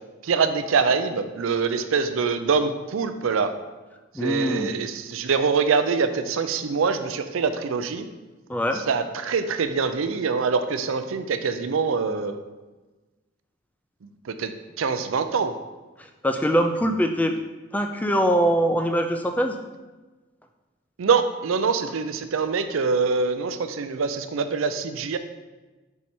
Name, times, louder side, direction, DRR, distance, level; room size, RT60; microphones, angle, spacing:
voice 1, 0.2-3.5 4.2-8.1 8.7-12.4 14.0-14.1 14.4-15.5 21.0-25.2, right 5 dB, 75° right, 10 dB, 0.5 m, -24 dB
voice 2, 4.1-4.7 8.5-8.8 16.2-17.3 17.7-19.6, equal, 5° left, 5 dB, 0.3 m, -22 dB
5.4 x 4.7 x 4.3 m, 1.2 s
head